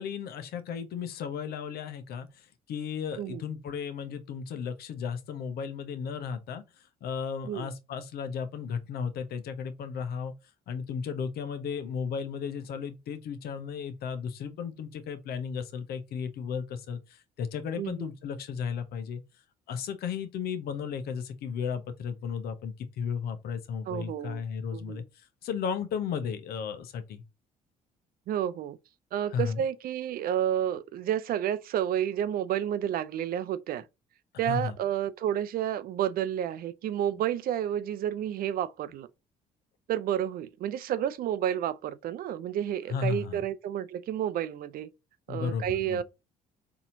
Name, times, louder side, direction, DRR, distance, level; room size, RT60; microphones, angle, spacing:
voice 1, 0.0-6.6 7.0-10.3 10.7-19.2 19.7-27.2 29.3-29.6 34.5-34.8 42.9-43.4 45.3-46.0, left 6 dB, 65° left, 0.8 m, -34 dB
voice 2, 17.8-18.1 23.9-24.4 24.7-25.0 28.3-28.8 29.1-33.8 34.4-39.1 39.9-44.9 45.3-46.0, right 10 dB, 60° right, 0.5 m, -30 dB
4.1 x 2.8 x 2.6 m
hypercardioid pair, 60°, 18 cm